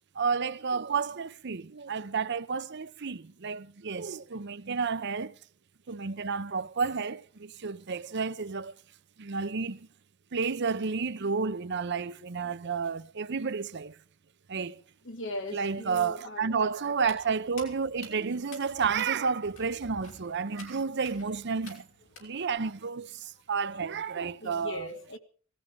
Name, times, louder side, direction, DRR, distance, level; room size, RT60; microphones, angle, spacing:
voice 1, 0.1-5.3 5.9-8.7 9.2-9.9 10.3-14.0 14.5-14.8 15.5-21.9 22.2-24.9, right 5 dB, 60° right, 0.7 m, -31 dB
voice 2, 15.0-16.7 22.2-22.3 24.4-25.2, left 1 dB, 65° left, 2.3 m, -39 dB
Walk footsteps, 17.0-22.6, left 3 dB, 85° left, 5.9 m, -51 dB
18.5 x 14.0 x 5.2 m
head